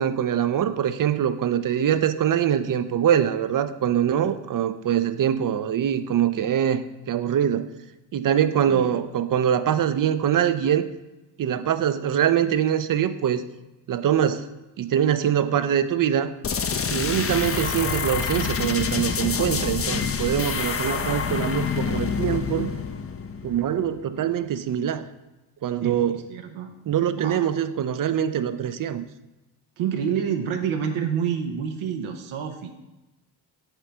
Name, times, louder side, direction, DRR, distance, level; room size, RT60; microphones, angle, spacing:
voice 1, 0.0-7.7 8.1-10.9 11.4-13.4 13.9-14.5 14.8-16.3 16.9-22.7 23.4-25.0 25.6-26.2 26.9-29.0, right 9 dB, 45° right, 12 dB, 0.5 m, -23 dB
sound 1, 16.4-24.0, left 6 dB, 30° left, 0.5 m, -27 dB
voice 2, 25.8-26.7 27.1-27.5 29.8-32.7, right 8 dB, 80° right, 5 dB, 0.7 m, -28 dB
7.3 x 3.3 x 5.0 m, 1.1 s
supercardioid pair, 60°, 48 cm